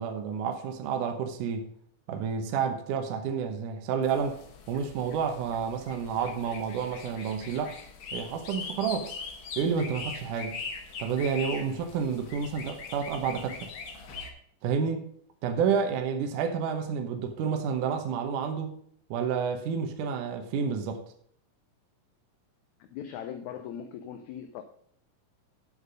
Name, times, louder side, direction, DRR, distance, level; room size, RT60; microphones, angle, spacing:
voice 1, 0.0-1.7 2.1-4.4 4.7-7.8 8.1-9.1 9.6-10.6 11.0-13.7 14.6-15.1 15.4-18.8 19.1-21.0, right 6 dB, 70° right, 5 dB, 2.5 m, -30 dB
sound 1, 4.0-14.3, left 4 dB, 55° left, 1.5 m, -41 dB
voice 2, 22.8-24.6, left 9 dB, 75° left, 8 dB, 1.8 m, -39 dB
8.3 x 8.2 x 5.3 m, 0.65 s
omnidirectional pair, 3.9 m